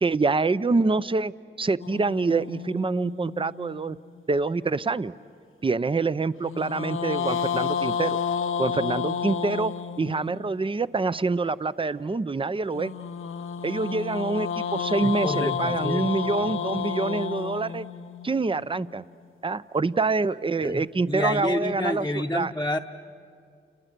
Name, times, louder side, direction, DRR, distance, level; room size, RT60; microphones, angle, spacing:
voice 1, 0.0-1.3 1.6-4.0 4.3-5.1 5.6-8.2 8.6-12.9 13.6-17.9 18.2-19.0 19.4-22.1 22.3-22.5, right 3 dB, 25° right, 16 dB, 0.6 m, -26 dB
sound 1, 1.8-4.2 6.4-10.6 12.7-18.9, left 7 dB, 75° left, 0.8 m, -31 dB
voice 2, 15.0-16.1 16.4-16.6 20.6-22.8, left 1 dB, 15° left, 0 dB, 0.9 m, -29 dB
30.0 x 29.5 x 6.7 m, 2.3 s
cardioid pair, 55°, 21 cm